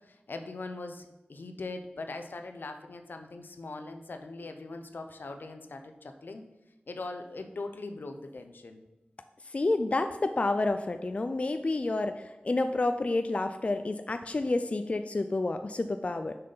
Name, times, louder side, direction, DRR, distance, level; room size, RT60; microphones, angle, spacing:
voice 1, 0.0-6.4 6.9-8.8 14.3-14.4, left 3 dB, 80° left, 6 dB, 0.7 m, -41 dB
voice 2, 9.5-16.3, left 2 dB, 40° left, 8 dB, 0.3 m, -29 dB
6.5 x 5.7 x 4.0 m, 1.0 s
wide cardioid pair, 75°, 3 cm